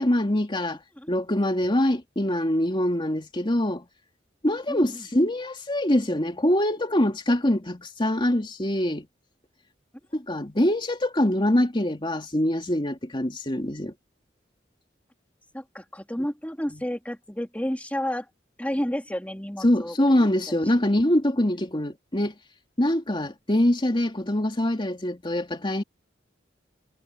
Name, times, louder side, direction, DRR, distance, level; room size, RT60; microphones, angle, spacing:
voice 1, 0.0-0.8 1.1-3.8 4.4-9.1 10.1-13.9 16.7-16.8 19.6-22.3 22.8-25.8, left 1 dB, 25° left, 2.6 m, -24 dB
voice 2, 4.7-5.1 15.5-18.3 18.6-20.6, equal, 10° left, 3.1 m, -31 dB
head